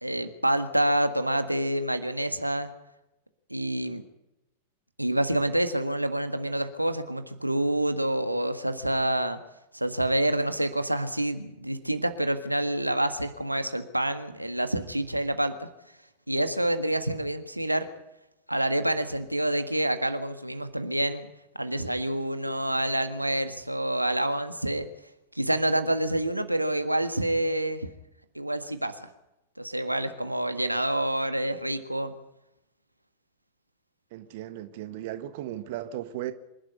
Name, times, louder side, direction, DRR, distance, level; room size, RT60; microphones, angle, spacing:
voice 1, 0.0-2.7 3.5-4.0 5.0-9.4 9.7-15.7 16.3-17.9 18.5-21.3 21.6-24.9 25.3-27.9 28.3-29.1 29.6-32.1, right 1 dB, 85° right, 9 dB, 1.6 m, -27 dB
voice 2, 34.1-36.3, right 13 dB, 50° right, 11 dB, 1.4 m, -36 dB
26.5 x 12.0 x 9.4 m, 0.91 s
figure-of-eight pair, 90°, 0 cm